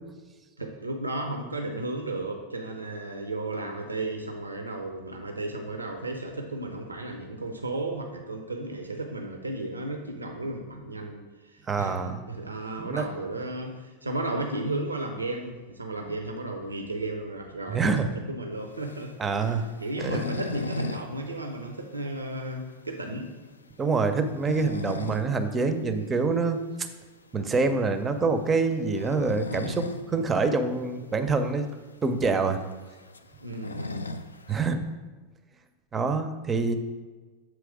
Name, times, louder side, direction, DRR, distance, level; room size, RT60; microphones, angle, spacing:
voice 1, 0.6-19.3 19.8-23.3 25.0-25.1 25.9-26.2 30.1-30.4 33.4-34.1, right 2 dB, 80° right, 4 dB, 0.5 m, -34 dB
voice 2, 11.7-12.2 12.8-13.1 17.7-18.1 19.2-19.7 20.0-20.2 23.8-26.6 27.3-31.7 32.0-32.6 34.5-34.8 35.9-36.8, right 4 dB, 20° right, 8 dB, 0.5 m, -26 dB
sound 1, 18.7-21.1 21.4-21.5 21.9-22.0 22.5-22.6 24.1-25.3 25.7-25.8 27.4-27.6 28.8-30.1 30.4-30.5 30.8-30.9 31.6-31.7 31.9-34.5, left 2 dB, 75° left, 0.3 m, -36 dB
7.6 x 3.1 x 4.8 m, 1.3 s
figure-of-eight pair, 90°, 0 cm